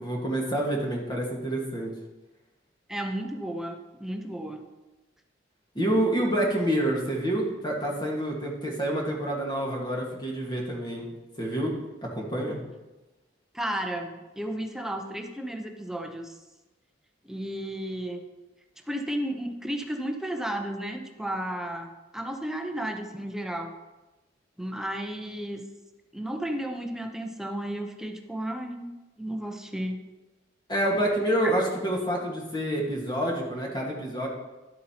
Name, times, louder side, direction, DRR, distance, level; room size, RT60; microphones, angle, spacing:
voice 1, 0.0-1.9 5.7-11.1 11.4-12.6 30.7-34.3, right 1 dB, 25° left, -2 dB, 1.5 m, -28 dB
voice 2, 2.9-4.6 13.5-16.3 17.3-18.2 18.9-23.8 24.6-25.6 26.1-28.9 29.2-30.0 31.4-31.5, right 1 dB, 5° right, 4 dB, 0.7 m, -33 dB
12.0 x 8.2 x 2.9 m, 1.1 s
head